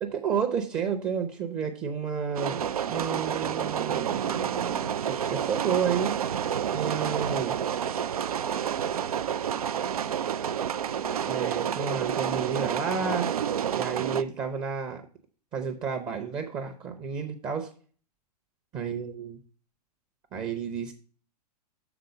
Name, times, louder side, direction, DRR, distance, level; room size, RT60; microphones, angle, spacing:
voice 1, 0.0-6.4 6.7-7.6 11.2-13.3 13.7-15.0 15.5-17.7 18.7-19.4 20.3-20.9, right 6 dB, 20° right, 5 dB, 0.7 m, -31 dB
sound 1, 2.4-14.2, right 8 dB, 65° right, 0.4 m, -29 dB
7.0 x 3.8 x 6.5 m, 0.41 s
figure-of-eight pair, 105°, 21 cm